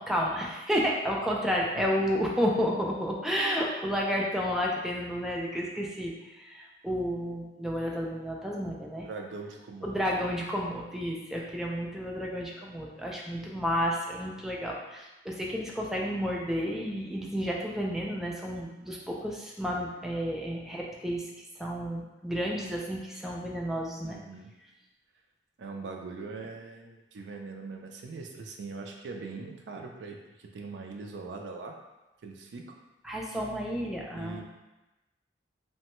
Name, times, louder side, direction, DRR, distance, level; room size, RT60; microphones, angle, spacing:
voice 1, 0.0-9.1 9.8-21.3 21.6-24.2 33.0-34.4, equal, ahead, -3 dB, 0.3 m, -31 dB
voice 2, 9.0-9.9 24.0-24.5 25.6-31.8 32.2-32.8 34.1-34.4, right 4 dB, 90° right, 2 dB, 0.4 m, -41 dB
3.1 x 2.2 x 2.9 m, 1.0 s
head